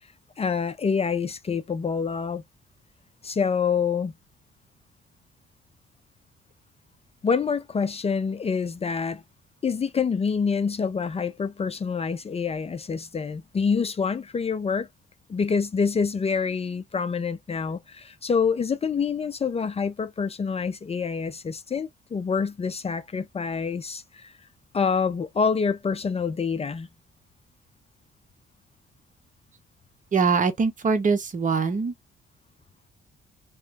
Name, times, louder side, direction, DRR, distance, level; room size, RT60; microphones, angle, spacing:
voice 1, 0.4-2.4 3.2-4.1 7.2-9.2 9.6-14.9 15.3-24.3 24.7-26.9, left 5 dB, 30° left, 0.5 m, -26 dB
voice 2, 30.1-31.9, right 5 dB, 40° right, 1.1 m, -23 dB
3.1 x 3.1 x 3.4 m
cardioid pair, 90°, 20 cm